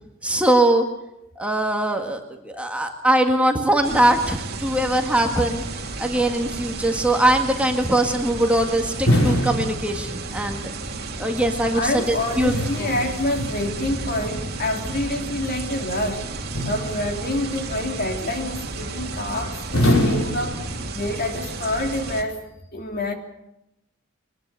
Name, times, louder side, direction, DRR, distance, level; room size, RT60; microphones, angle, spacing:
voice 1, 0.2-0.9 1.4-5.6 6.0-10.7 11.2-12.5 12.8-12.9, right 1 dB, 5° right, 3 dB, 1.8 m, -21 dB
sound 1, 3.8-22.2, right 3 dB, 50° right, 2.9 m, -33 dB
sound 2, 9.1-10.5 11.8-13.9 16.5-17.4 19.7-21.2, left 1 dB, 90° left, 6.2 m, -24 dB
voice 2, 11.7-16.3 16.6-20.6 20.9-22.4 22.7-23.1, left 1 dB, 45° left, 4 dB, 3.2 m, -27 dB
23.0 x 20.5 x 6.9 m, 0.88 s
head